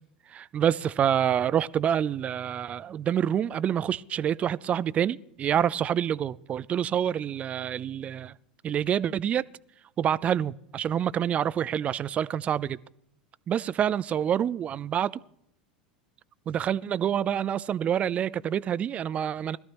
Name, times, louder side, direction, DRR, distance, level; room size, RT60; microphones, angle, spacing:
voice 1, 0.3-8.3 8.6-9.4 10.0-12.8 13.5-15.2 16.5-19.6, right 9 dB, 30° right, 0.4 m, -27 dB
20.5 x 14.0 x 3.0 m
figure-of-eight pair, 80°, 5 cm